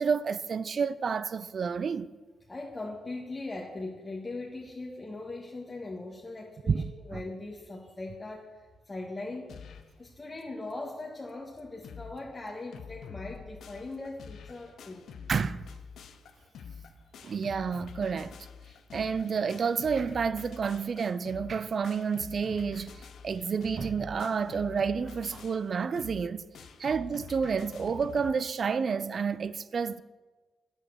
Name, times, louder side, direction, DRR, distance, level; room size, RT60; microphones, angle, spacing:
voice 1, 0.0-2.1 6.7-7.2 15.3-15.7 17.2-18.4 18.9-26.5 26.8-30.0, right 6 dB, 55° right, 0.5 m, -30 dB
voice 2, 2.5-9.5 10.0-15.0 26.8-26.9, left 2 dB, 30° left, 1.7 m, -40 dB
sound 1, 9.5-10.0 10.4-10.5 10.7-10.8 11.3-11.4 11.6-12.2 12.5-28.3, left 6 dB, 70° left, 0.8 m, -47 dB
8.9 x 8.2 x 6.4 m
hypercardioid pair, 45°, 0 cm